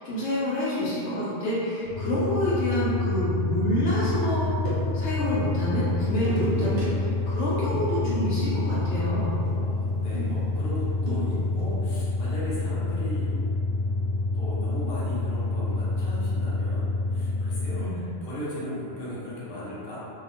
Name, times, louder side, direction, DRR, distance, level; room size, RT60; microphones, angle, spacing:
voice 1, 0.0-4.5 4.9-6.9 7.3-9.4 17.8-18.0, left 1 dB, 85° left, -9 dB, 0.9 m, -27 dB
sound 1, 1.8-17.9, left 2 dB, 15° right, 0.6 m, -28 dB
sound 2, 3.8-5.1 6.1-6.8 7.1-7.4 7.7-11.7, equal, 85° right, 1.1 m, -35 dB
voice 2, 6.9-7.6 9.5-13.6 14.3-20.0, left 1 dB, 60° left, -9 dB, 1.0 m, -37 dB
2.7 x 2.0 x 2.8 m, 2.7 s
omnidirectional pair, 1.2 m